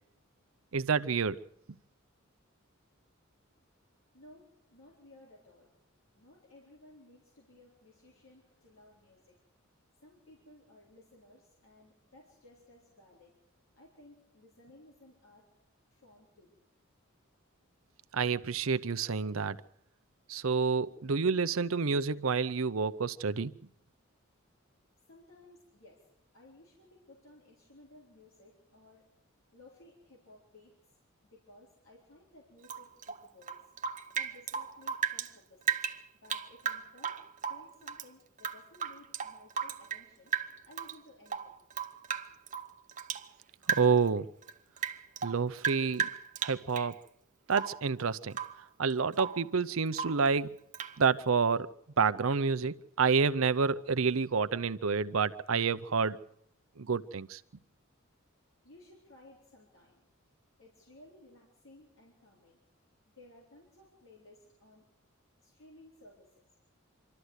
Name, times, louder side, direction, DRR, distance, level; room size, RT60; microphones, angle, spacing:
voice 1, 0.7-1.4 18.1-19.6 20.3-23.5 43.7-44.3 45.2-46.1 46.4-47.0 47.5-48.4 48.8-50.5 51.0-51.7 52.0-56.2 56.8-57.4, right 5 dB, 80° right, 0.7 m, -28 dB
voice 2, 3.5-9.6 10.0-13.3 13.7-15.5 15.9-16.6 25.1-26.0 26.3-29.1 29.5-30.8 31.2-33.7 34.1-35.8 36.2-37.2 37.5-40.3 40.6-41.6 58.6-60.1 60.6-62.6 63.2-64.8 65.4-66.4, left 2 dB, 70° left, 4.1 m, -58 dB
Rain / Drip, 32.6-35.3 35.6-38.1 38.4-40.1 40.3-41.0 41.3-43.3 43.6-44.1 44.4-46.9 47.5-47.9 48.3-48.6 48.9-49.5 49.9-50.3 50.7-51.0, right 7 dB, 35° right, 0.9 m, -35 dB
25.5 x 13.0 x 8.1 m
head